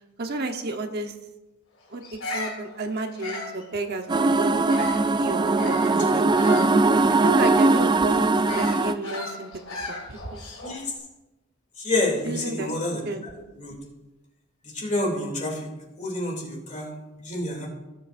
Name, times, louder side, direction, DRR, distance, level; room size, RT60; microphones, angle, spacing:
voice 1, 0.2-1.1 1.9-4.9 5.2-6.3 7.1-9.5 9.8-10.4 12.2-12.7 13.0-13.3, right 2 dB, 50° right, 4 dB, 1.0 m, -31 dB
Bird vocalization bird call bird song, 2.0-5.1 5.5-10.8, left 2 dB, 75° left, 3.1 m, -37 dB
sound 1, 4.1-8.9, right 3 dB, 20° right, 0.3 m, -20 dB
voice 2, 11.8-13.0 13.6-13.7 14.7-15.6 16.0-16.9 17.2-17.7, left 2 dB, 35° left, 0 dB, 2.7 m, -28 dB
18.0 x 8.2 x 2.5 m, 1.0 s
head